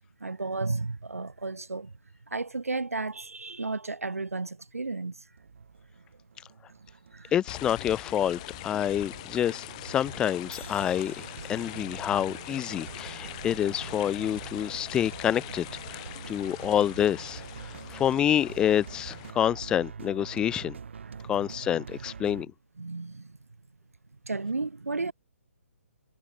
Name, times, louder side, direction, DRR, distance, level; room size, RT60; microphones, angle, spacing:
voice 1, 0.2-2.0 2.3-5.2 7.1-7.3 21.1-21.2 22.8-23.4 24.2-25.1, right 3 dB, 85° right, 0.4 m, -33 dB
sound 1, 5.4-22.4, right 6 dB, 55° right, 1.1 m, -44 dB
voice 2, 7.3-17.4 17.9-20.8 21.3-22.5, left 10 dB, 10° left, 0.4 m, -28 dB
sound 2, 7.5-19.3, left 21 dB, 30° left, 1.1 m, -43 dB
Crash cymbal, 10.5-14.6, left 5 dB, 65° left, 2.4 m, -54 dB
figure-of-eight pair, 135°, 8 cm